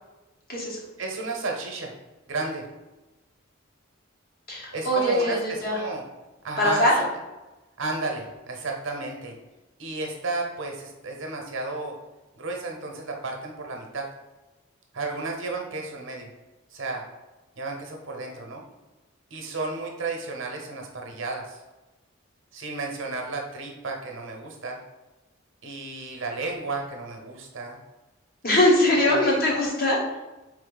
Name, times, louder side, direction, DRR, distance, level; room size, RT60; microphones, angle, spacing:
voice 1, 1.0-1.9 2.3-2.7 4.7-6.0 6.4-7.1 7.8-9.3 9.8-11.9 12.4-14.1 14.9-16.3 16.7-17.0 17.6-18.6 19.3-21.6 22.5-24.8 25.6-27.8 28.9-29.4, right 3 dB, 60° right, 1 dB, 0.8 m, -33 dB
voice 2, 4.5-5.8 6.6-6.9 28.4-30.0, left 1 dB, 45° left, -3 dB, 1.1 m, -22 dB
4.1 x 3.2 x 4.0 m, 1.1 s
head